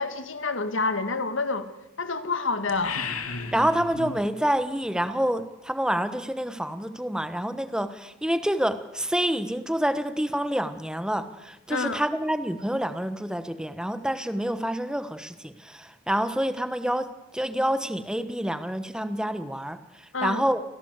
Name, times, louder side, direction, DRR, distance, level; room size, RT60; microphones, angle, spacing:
voice 1, 0.0-1.7 2.0-3.0 11.7-12.0 20.1-20.4, left 3 dB, 60° left, 10 dB, 2.0 m, -28 dB
sound 1, 2.7-4.3, left 4 dB, 85° left, 2.7 m, -34 dB
voice 2, 3.5-20.6, equal, 5° right, 11 dB, 1.2 m, -27 dB
27.0 x 17.5 x 8.2 m, 0.98 s
head